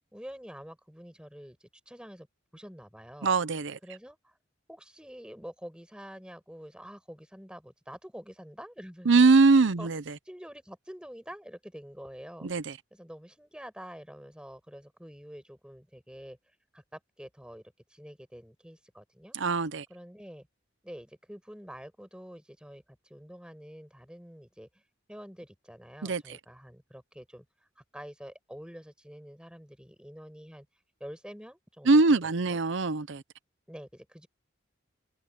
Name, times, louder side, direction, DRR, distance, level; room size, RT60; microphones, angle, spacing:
voice 1, 0.1-2.3 2.5-3.3 3.8-4.3 4.7-9.3 9.8-9.9 10.3-12.5 12.9-16.4 16.7-17.6 17.9-19.4 19.9-20.5 20.8-24.7 25.1-27.5 27.8-30.7 31.0-32.0 32.5-32.6 33.7-34.3, equal, 5° right, 5.3 m, -47 dB
voice 2, 3.2-3.8 9.0-10.2 12.4-12.8 19.3-19.9 26.0-26.4 31.8-33.2, right 3 dB, 75° right, 0.7 m, -23 dB
head